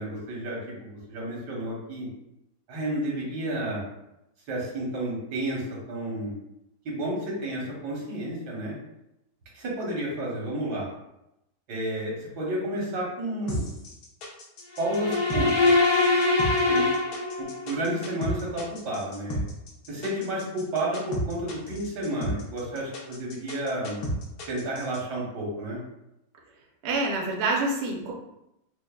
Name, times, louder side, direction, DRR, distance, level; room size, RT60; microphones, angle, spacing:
voice 1, 0.0-2.1 2.7-3.8 4.5-6.3 6.9-8.8 9.5-10.9 11.7-13.6 14.8-15.7 16.7-16.9 17.4-19.4 19.9-24.0 24.5-25.8, right 1 dB, 80° right, -4 dB, 1.7 m, -31 dB
sound 1, 13.5-25.0, equal, 70° left, 1.3 m, -33 dB
sound 2, 14.7-17.8, left 3 dB, 40° left, 0.7 m, -23 dB
voice 2, 26.8-28.1, right 2 dB, 55° right, -1 dB, 0.7 m, -26 dB
5.7 x 2.0 x 2.3 m, 0.86 s
omnidirectional pair, 1.8 m